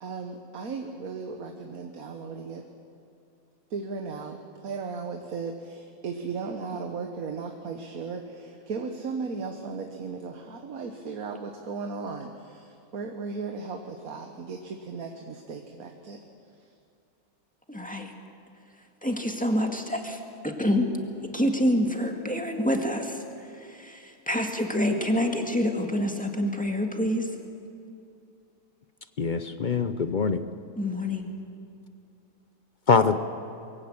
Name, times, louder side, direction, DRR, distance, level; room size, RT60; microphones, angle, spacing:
voice 1, 0.0-2.6 3.7-16.2, right 4 dB, 70° right, 4 dB, 1.6 m, -36 dB
voice 2, 17.7-18.1 19.0-20.9 21.2-23.2 23.5-27.3 30.8-31.3, left 1 dB, 5° left, 2 dB, 1.8 m, -27 dB
voice 3, 29.2-30.4 32.9-33.2, left 5 dB, 50° left, 10 dB, 0.6 m, -23 dB
22.5 x 16.0 x 8.7 m, 2.6 s
omnidirectional pair, 1.6 m